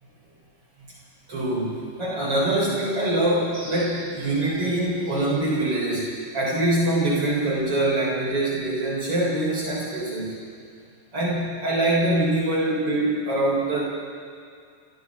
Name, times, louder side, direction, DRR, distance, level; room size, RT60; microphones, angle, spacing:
voice 1, 1.3-10.4 11.1-13.8, right 1 dB, 50° right, -4 dB, 8.7 m, -24 dB
29.5 x 28.0 x 3.2 m, 2.2 s
omnidirectional pair, 3.4 m